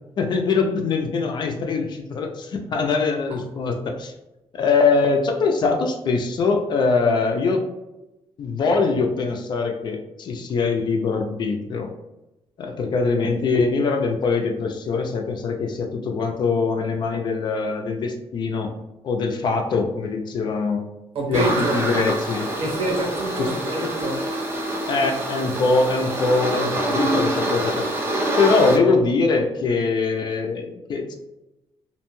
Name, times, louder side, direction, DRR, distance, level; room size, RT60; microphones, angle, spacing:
voice 1, 0.2-4.1 4.5-7.6 8.4-11.9 12.6-18.7 19.0-20.8 21.3-22.5 23.4-23.5 24.9-28.0 28.4-31.1, left 4 dB, 45° left, 0.3 m, -22 dB
voice 2, 21.1-21.9 22.6-24.3, right 2 dB, 60° right, 0.7 m, -26 dB
sound 1, 21.3-28.8, right 1 dB, 20° right, 0.5 m, -26 dB
2.6 x 2.1 x 2.9 m
cardioid pair, 160°, 11 cm